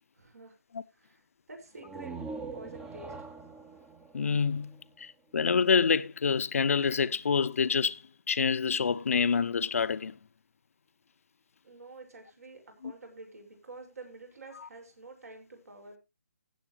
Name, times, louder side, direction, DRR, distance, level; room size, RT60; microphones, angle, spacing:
voice 1, 0.1-0.6 0.9-1.2 1.5-2.2 2.5-3.3 11.6-16.0, right 2 dB, 70° right, 6.1 m, -48 dB
sound 1, 1.7-5.4, right 4 dB, 10° right, 0.7 m, -43 dB
voice 2, 4.1-8.0 8.3-10.2 12.8-12.9, left 6 dB, 60° left, 0.7 m, -27 dB
16.5 x 7.9 x 3.2 m
figure-of-eight pair, 150°, 9 cm